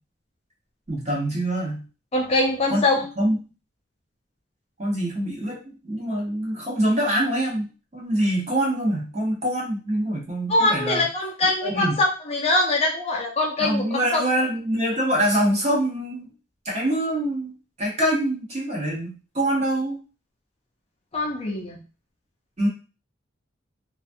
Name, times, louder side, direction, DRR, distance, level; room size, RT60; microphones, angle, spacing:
voice 1, 0.9-1.9 2.7-2.9 3.2-3.4 4.8-5.6 5.8-11.1 11.6-11.9 13.6-16.3 16.6-17.5 17.8-20.0 22.6-22.7, right 1 dB, 35° right, -4 dB, 1.0 m, -24 dB
voice 2, 2.1-3.1 10.5-14.2 21.1-21.8, left 2 dB, 30° left, 0 dB, 0.4 m, -23 dB
2.4 x 2.2 x 2.5 m, 0.33 s
head